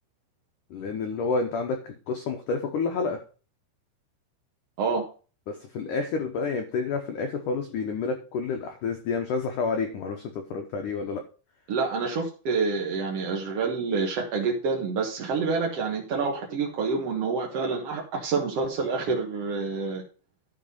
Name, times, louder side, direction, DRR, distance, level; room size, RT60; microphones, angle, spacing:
voice 1, 0.7-3.2 5.5-11.2, left 4 dB, 80° left, 4 dB, 1.8 m, -29 dB
voice 2, 11.7-20.0, right 4 dB, 65° right, 0 dB, 1.5 m, -27 dB
12.0 x 5.1 x 5.4 m, 0.36 s
omnidirectional pair, 5.2 m